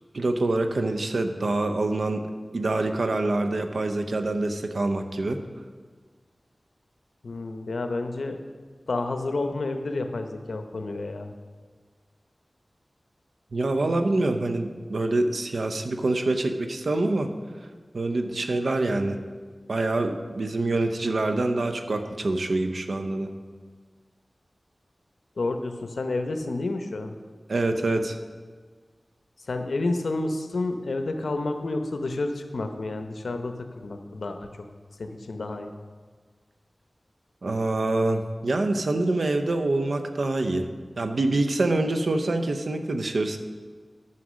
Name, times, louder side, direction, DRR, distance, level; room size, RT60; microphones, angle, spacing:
voice 1, 0.1-2.3 2.5-5.5 13.5-17.3 17.9-19.2 19.7-23.3 27.5-28.2 37.4-40.7 41.0-43.4, right 2 dB, 80° right, 7 dB, 0.7 m, -25 dB
voice 2, 7.2-8.4 8.9-11.3 25.4-27.1 29.4-34.5 35.0-35.7, left 2 dB, 90° left, 6 dB, 0.8 m, -30 dB
9.7 x 6.0 x 6.2 m, 1.5 s
wide cardioid pair, 55°, 0 cm